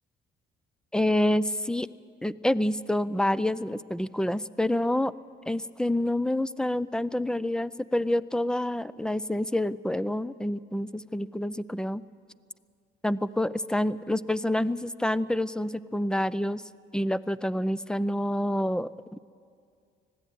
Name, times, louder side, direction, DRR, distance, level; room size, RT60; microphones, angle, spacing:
voice 1, 0.9-1.9 2.2-5.1 5.5-12.0 13.0-16.6 16.9-19.2, left 1 dB, 5° left, 18 dB, 0.5 m, -27 dB
20.0 x 15.0 x 9.3 m, 2.3 s
cardioid pair, 90°, 20 cm